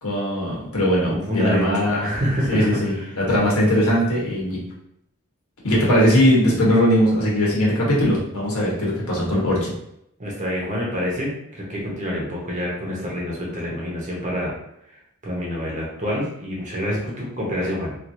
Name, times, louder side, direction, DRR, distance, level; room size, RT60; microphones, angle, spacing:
voice 1, 0.0-2.1 2.5-4.6 5.6-9.7, equal, 80° left, -4 dB, 1.1 m, -20 dB
voice 2, 1.1-3.1 10.2-14.5 15.2-18.0, equal, 35° right, -4 dB, 0.8 m, -27 dB
2.9 x 2.5 x 2.6 m, 0.78 s
head